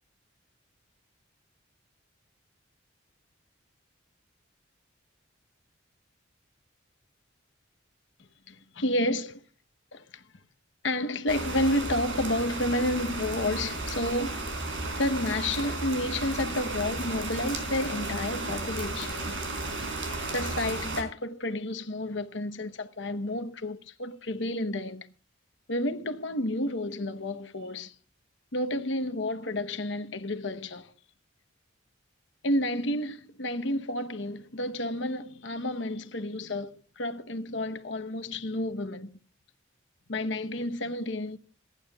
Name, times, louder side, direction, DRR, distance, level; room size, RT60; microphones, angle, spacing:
voice 1, 8.5-9.3 9.9-10.2 10.8-14.5 15.0-19.4 20.3-25.1 25.7-28.0 28.5-30.9 32.4-39.1 40.1-41.4, left 1 dB, 65° left, 1.0 m, -30 dB
sound 1, 11.3-21.0, right 2 dB, 70° right, 4.3 m, -34 dB
27.0 x 11.0 x 2.4 m
head